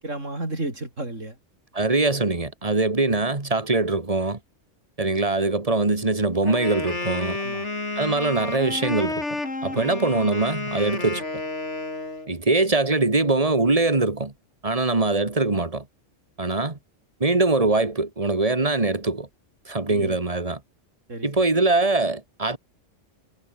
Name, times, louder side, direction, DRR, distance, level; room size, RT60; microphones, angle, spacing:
voice 1, 0.0-1.4 7.4-7.7 9.7-10.0 19.9-20.2 21.1-21.3 21.5-21.6, right 2 dB, 90° right, 6.4 m, -33 dB
voice 2, 1.7-4.4 5.0-7.4 8.0-9.2 9.6-11.2 12.3-14.3 14.6-15.8 16.4-16.8 17.2-19.3 19.7-20.6 21.2-22.6, right 2 dB, 30° right, 2.2 m, -22 dB
Wind instrument woodwind instrument, 6.4-12.3, left 2 dB, 70° left, 4.3 m, -31 dB
omnidirectional pair, 1.3 m